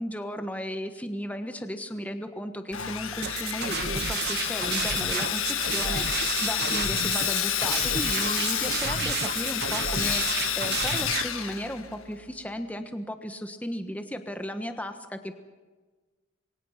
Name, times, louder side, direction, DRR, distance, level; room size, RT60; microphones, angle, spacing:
voice 1, 0.0-15.3, equal, 5° left, 7 dB, 1.3 m, -35 dB
Sawing, 2.7-12.2, left 10 dB, 75° left, 1.7 m, -29 dB
sound 1, 3.2-11.2, right 7 dB, 50° right, 1.0 m, -32 dB
27.5 x 22.5 x 5.9 m, 1.3 s
head